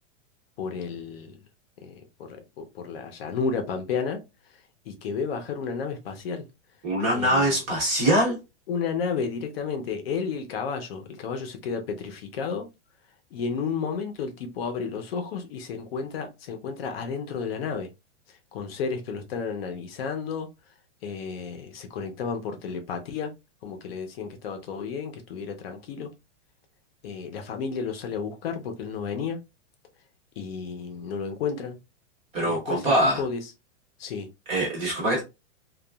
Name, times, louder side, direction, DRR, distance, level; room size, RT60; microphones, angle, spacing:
voice 1, 0.6-1.4 1.8-1.9 2.3-4.2 4.9-6.4 7.1-7.6 8.7-12.7 13.3-17.9 18.5-20.5 21.0-23.3 23.6-26.1 27.0-29.4 30.4-31.8 32.4-33.4 34.0-34.3, left 5 dB, 55° left, 0.6 m, -32 dB
voice 2, 6.8-8.4 32.3-33.2 34.5-35.2, right 1 dB, 15° right, 0.5 m, -23 dB
2.8 x 2.3 x 2.2 m
supercardioid pair, 160°, 37 cm